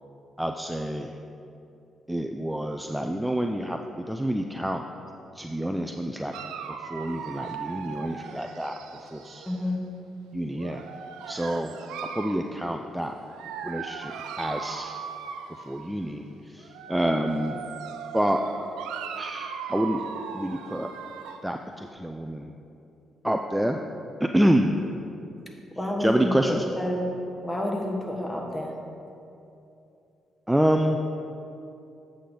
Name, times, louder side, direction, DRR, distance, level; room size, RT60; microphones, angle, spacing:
voice 1, 0.4-1.1 2.1-4.8 5.3-6.3 6.7-8.7 9.0-9.4 10.3-10.8 11.3-11.7 12.1-13.2 13.6-14.1 14.4-15.0 15.7-17.6 18.1-18.4 19.1-20.0 20.3-20.9 21.4-22.5 23.2-23.8 24.2-24.8 26.0-26.6 30.5-31.0, equal, 5° right, 4 dB, 0.4 m, -27 dB
Dog, 6.3-9.7 10.5-12.5 13.3-15.9 16.6-21.5, right 7 dB, 85° right, 0.4 m, -38 dB
voice 2, 9.5-9.8 25.7-27.1 27.4-28.7, left 1 dB, 20° left, 0 dB, 1.4 m, -29 dB
8.3 x 6.3 x 3.9 m, 2.7 s
supercardioid pair, 60°, 0 cm